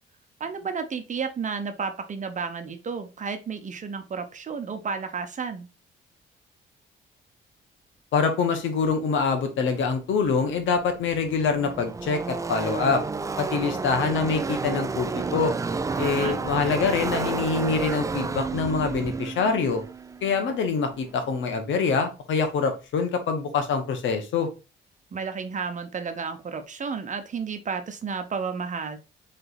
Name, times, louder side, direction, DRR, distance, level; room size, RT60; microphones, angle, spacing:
voice 1, 0.4-5.7 16.0-16.3 25.1-29.0, right 5 dB, 40° right, 7 dB, 0.8 m, -32 dB
voice 2, 8.1-13.0 13.4-15.5 16.0-19.8 20.2-24.5, left 5 dB, 75° left, 6 dB, 1.1 m, -25 dB
Car passing by / Race car auto racing, 10.7-21.2, right 4 dB, 15° right, 0.3 m, -31 dB
3.9 x 3.4 x 4.0 m, 0.30 s
cardioid pair, 90°, 20 cm